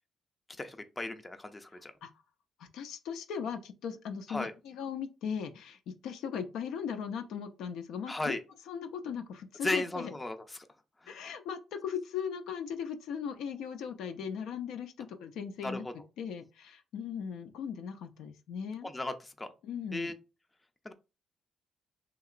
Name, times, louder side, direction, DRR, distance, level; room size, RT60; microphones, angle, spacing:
voice 1, 0.6-1.9 4.3-4.5 8.1-8.4 9.6-10.4 11.0-11.2 15.6-15.8 18.8-19.5 19.9-20.1 20.8-20.9, left 2 dB, 20° left, 0.4 m, -35 dB
voice 2, 1.7-2.1 2.6-8.4 8.7-10.1 11.1-18.9 19.6-20.1, left 7 dB, 85° left, 0.4 m, -38 dB
2.9 x 2.8 x 2.4 m
cardioid pair, 90°, 0 cm